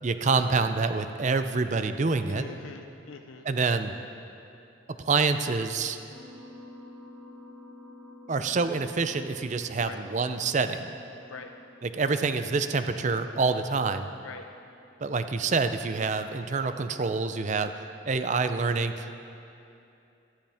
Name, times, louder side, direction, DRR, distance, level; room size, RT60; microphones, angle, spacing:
voice 1, 0.0-2.5 3.5-4.0 5.0-6.0 8.3-10.9 11.8-14.1 15.0-17.7 18.0-19.1, right 4 dB, 35° right, 9 dB, 0.5 m, -27 dB
voice 2, 2.3-3.5 9.8-10.0 11.3-11.5 14.2-14.5, left 5 dB, 85° left, 5 dB, 0.6 m, -43 dB
sound 1, 6.1-18.5, left 2 dB, 70° right, 3.1 m, -52 dB
14.0 x 13.0 x 3.5 m, 2.7 s
head